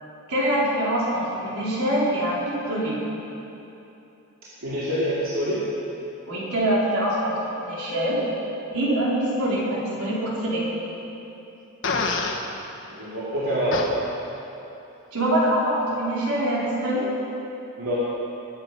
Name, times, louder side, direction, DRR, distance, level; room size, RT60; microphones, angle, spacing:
voice 1, 0.3-3.0 6.3-8.2 8.7-10.6 15.1-17.1, right 1 dB, 80° right, -6 dB, 4.4 m, -24 dB
voice 2, 4.6-5.6 12.9-13.9 17.8-18.1, equal, 65° right, -9 dB, 2.6 m, -26 dB
Fart, 11.8-12.4 13.7-13.9, left 4 dB, 55° left, 1.4 m, -25 dB
21.5 x 9.0 x 5.8 m, 2.9 s
head